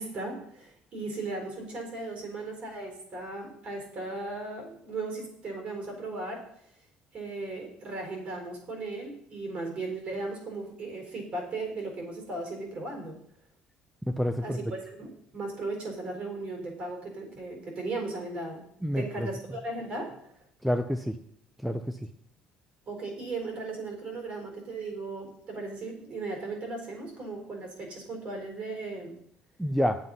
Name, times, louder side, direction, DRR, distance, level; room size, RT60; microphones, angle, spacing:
voice 1, 0.0-6.4 7.1-13.2 14.4-18.7 18.9-20.2 22.9-29.2, right 3 dB, 45° right, 2 dB, 4.1 m, -37 dB
voice 2, 14.0-14.6 18.8-19.3 20.6-21.2 21.6-22.0 29.6-30.0, equal, ahead, 8 dB, 0.5 m, -28 dB
9.8 x 7.7 x 5.5 m, 0.68 s
cardioid pair, 155°, 3 cm